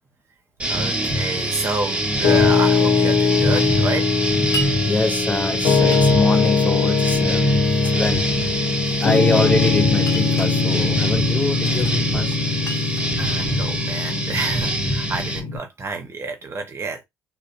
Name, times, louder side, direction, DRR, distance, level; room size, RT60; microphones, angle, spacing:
sound 1, 0.6-15.4, right 1 dB, 20° right, 1.2 m, -24 dB
voice 1, 0.6-4.1 13.2-17.0, right 3 dB, 40° right, 0.9 m, -29 dB
Piano, 2.2-15.6, left 5 dB, 70° left, 0.9 m, -21 dB
Glass, 4.5-4.7 5.9-6.5 7.3-8.0 8.8-9.5 10.0-10.6 11.6-12.0 12.3-14.0, right 1 dB, 45° left, 1.0 m, -34 dB
voice 2, 4.8-8.3 9.0-12.4, left 2 dB, 20° left, 0.4 m, -24 dB
2.6 x 2.1 x 2.5 m
hypercardioid pair, 60°, 7 cm